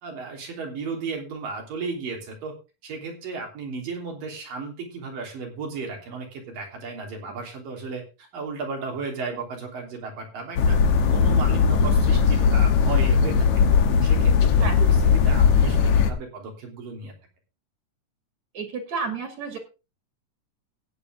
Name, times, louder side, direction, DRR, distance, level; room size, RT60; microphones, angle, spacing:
voice 1, 0.0-2.6 2.8-17.1, right 4 dB, 85° right, 1 dB, 5.1 m, -35 dB
sound 1, 10.6-16.1, left 6 dB, 70° left, 2.5 m, -19 dB
voice 2, 18.5-19.6, right 5 dB, 55° right, 5 dB, 3.6 m, -31 dB
15.0 x 9.5 x 3.8 m, 0.30 s
omnidirectional pair, 3.8 m